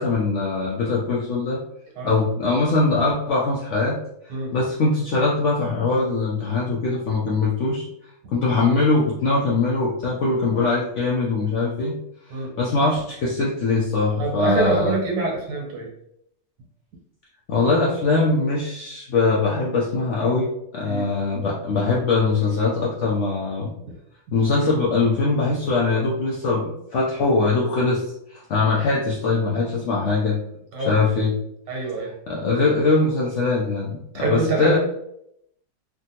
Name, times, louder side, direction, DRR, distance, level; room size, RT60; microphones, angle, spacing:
voice 1, 0.0-1.6 2.0-4.0 4.5-7.9 8.3-12.0 12.6-14.9 17.5-23.7 24.3-28.0 28.3-30.4 30.8-31.3 32.3-34.8, left 3 dB, 70° left, -4 dB, 0.6 m, -22 dB
voice 2, 14.2-15.9 20.8-21.1 23.8-23.9 30.7-31.0 31.7-32.1 34.1-34.8, right 3 dB, 90° right, -1 dB, 1.6 m, -25 dB
3.4 x 2.2 x 2.7 m, 0.76 s
omnidirectional pair, 1.8 m